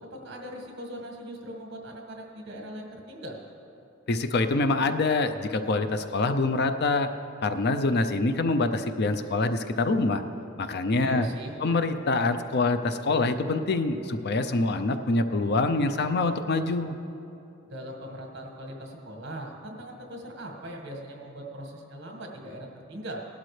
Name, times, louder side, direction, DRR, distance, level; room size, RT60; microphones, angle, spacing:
voice 1, 0.0-3.4 10.9-11.5 17.7-23.3, right 1 dB, 55° right, 1 dB, 1.8 m, -40 dB
voice 2, 4.1-7.1 7.4-10.2 10.6-11.3 11.6-16.9, left 3 dB, 50° left, 9 dB, 0.5 m, -25 dB
18.0 x 12.0 x 3.3 m, 2.8 s
head